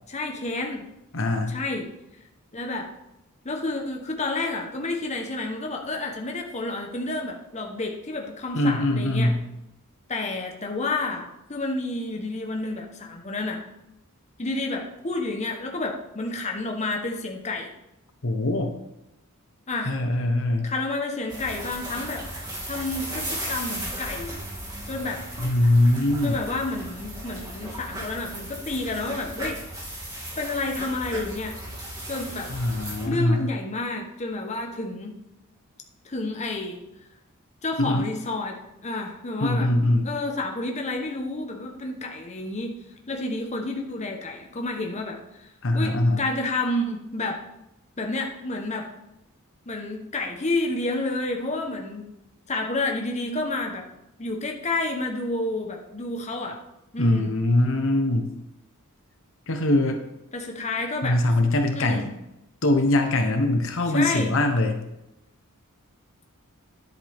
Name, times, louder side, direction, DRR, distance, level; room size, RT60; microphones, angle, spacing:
voice 1, 0.1-0.9 1.5-1.9 2.5-2.9 3.4-9.3 10.1-13.6 14.4-17.7 19.7-20.0 20.6-24.3 24.9-25.2 26.2-29.6 30.4-31.6 32.1-32.5 33.1-35.2 36.0-36.8 37.6-38.6 38.8-39.7 40.0-42.8 43.1-47.4 48.0-48.9 49.7-52.1 52.5-53.8 54.2-56.6 56.9-57.3 60.3-61.2 61.7-62.1 63.9-64.3, left 2 dB, 30° left, 2 dB, 1.1 m, -30 dB
voice 2, 1.1-1.5 8.5-9.4 18.2-18.7 19.9-20.7 25.4-26.4 32.5-33.5 37.8-38.1 39.4-40.1 45.6-46.2 57.0-58.3 59.5-60.0 61.0-62.1 62.6-64.8, left 1 dB, 60° left, 5 dB, 1.0 m, -22 dB
sound 1, 21.3-33.1, right 1 dB, 20° right, 2.7 m, -36 dB
10.5 x 8.1 x 3.6 m, 0.87 s
head